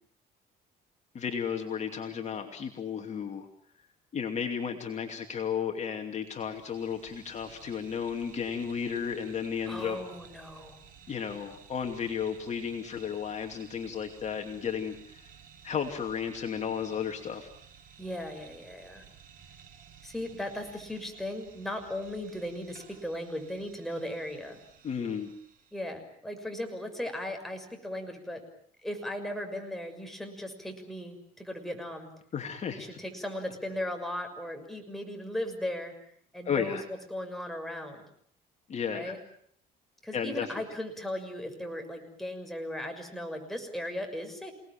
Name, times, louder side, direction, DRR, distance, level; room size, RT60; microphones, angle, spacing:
voice 1, 1.1-3.5 4.1-10.0 11.1-15.3 15.6-17.5 24.8-25.3 32.3-32.9 36.4-36.8 38.7-39.1 40.1-40.6, left 7 dB, 45° left, 4 dB, 2.7 m, -33 dB
sound 1, 6.2-25.9, right 7 dB, 55° right, 6.7 m, -55 dB
voice 2, 9.7-10.8 18.0-19.0 20.0-24.6 25.7-28.4 28.8-32.1 32.7-35.9 36.3-38.0 38.9-39.2 40.0-44.5, left 1 dB, ahead, 4 dB, 6.3 m, -37 dB
29.0 x 19.0 x 8.9 m, 0.64 s
cardioid pair, 110°, 17 cm